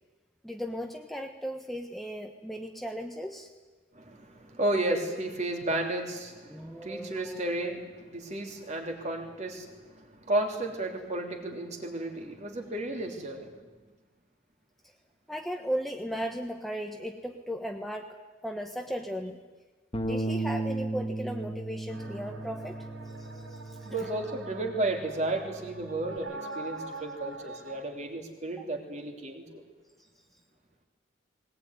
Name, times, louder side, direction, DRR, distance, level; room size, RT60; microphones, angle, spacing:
voice 1, 0.4-3.5 6.5-7.7 14.8-14.9 15.3-18.2 18.4-19.4 20.0-22.8 23.0-24.1 28.6-28.7 30.0-30.1, equal, ahead, 3 dB, 1.3 m, -37 dB
voice 2, 3.9-13.5 23.8-29.6, right 2 dB, 35° right, 3 dB, 3.2 m, -33 dB
Bass guitar, 19.9-26.2, right 2 dB, 25° left, 1.9 m, -36 dB
sound 1, 21.9-27.8, right 2 dB, 90° right, 4.6 m, -44 dB
20.5 x 19.5 x 9.7 m, 1.3 s
head